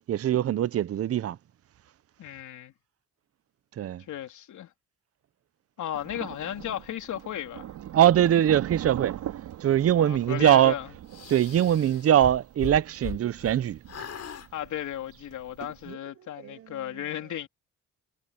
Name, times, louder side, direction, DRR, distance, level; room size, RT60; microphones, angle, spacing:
voice 1, 0.1-1.4 3.8-4.0 7.9-9.1 9.6-10.7 11.3-14.1 15.9-16.0, right 11 dB, 50° right, 0.8 m, -22 dB
voice 2, 2.2-2.7 4.0-4.7 5.8-7.7 9.9-10.9 14.5-17.5, left 11 dB, 75° left, 3.7 m, -35 dB
Thunder, 5.9-15.9, right 12 dB, 80° right, 4.0 m, -41 dB
sound 1, 11.1-13.6 13.9-14.5, left 8 dB, 55° left, 6.5 m, -39 dB
cardioid pair, 90°, 30 cm